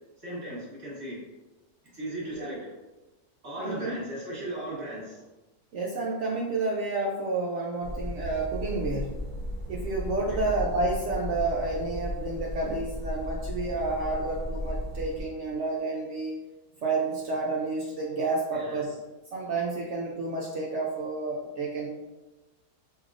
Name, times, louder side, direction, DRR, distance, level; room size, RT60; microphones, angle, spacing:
voice 1, 0.2-1.2 1.9-2.7 3.4-5.2 10.3-10.5 18.5-18.8, right 1 dB, 20° right, -7 dB, 1.3 m, -37 dB
voice 2, 3.6-4.0 5.7-9.2 9.7-16.3 16.8-19.0 19.3-21.9, right 3 dB, 70° right, -3 dB, 0.7 m, -30 dB
sound 1, 7.8-15.2, left 1 dB, 35° left, 0.9 m, -35 dB
4.8 x 2.7 x 2.4 m, 1.1 s
omnidirectional pair, 1.7 m